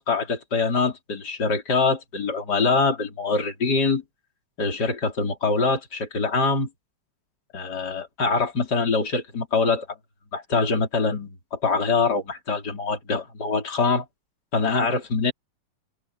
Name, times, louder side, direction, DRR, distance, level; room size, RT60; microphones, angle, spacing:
voice 1, 0.0-4.0 4.6-6.7 7.5-9.9 10.3-14.0 14.5-15.3, left 4 dB, 30° left, 4.4 m, -24 dB
omnidirectional pair, 3.7 m